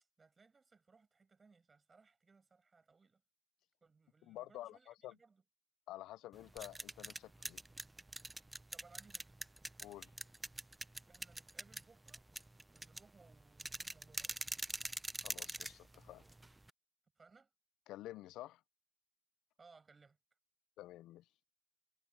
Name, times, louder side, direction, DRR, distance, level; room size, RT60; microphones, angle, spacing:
voice 1, 0.2-3.2 3.8-5.4 8.7-9.3 11.1-12.2 12.7-14.4 17.2-17.5 19.6-20.2, right 4 dB, 30° right, 6.7 m, -65 dB
voice 2, 4.2-5.2 5.9-7.6 9.8-10.1 15.2-16.3 17.9-18.6 20.8-21.3, left 15 dB, 90° left, 0.3 m, -50 dB
sound 1, 6.3-16.7, right 2 dB, 15° right, 0.6 m, -45 dB
cardioid pair, 90°, 0 cm